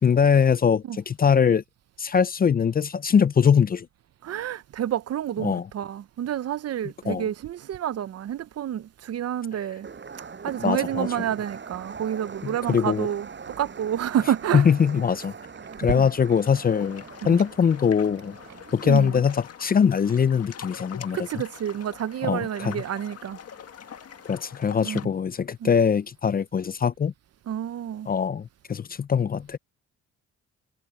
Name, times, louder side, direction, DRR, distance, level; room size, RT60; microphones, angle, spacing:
voice 1, 0.0-1.6 2.0-3.9 5.4-5.7 7.1-7.2 10.6-11.1 12.4-13.1 14.5-15.3 15.8-18.4 18.7-21.2 22.2-22.8 24.3-27.1 28.1-29.6, left 7 dB, 30° left, 0.5 m, -22 dB
voice 2, 4.2-9.9 10.4-14.7 15.8-16.1 17.3-17.4 18.8-19.2 21.1-23.4 24.8-25.1 25.6-25.7 27.5-28.1, right 10 dB, 55° right, 0.8 m, -29 dB
sound 1, 9.8-19.2, right 5 dB, 40° right, 8.0 m, -42 dB
sound 2, 15.4-15.8 16.2-16.5 17.2-17.6 18.0-18.6 19.5-19.7 20.0-20.2 20.5-21.2 21.8-22.0 22.4-22.5, right 12 dB, 75° right, 5.8 m, -55 dB
sound 3, 16.4-25.1, left 8 dB, 55° left, 1.8 m, -44 dB
cardioid pair, 90°, 30 cm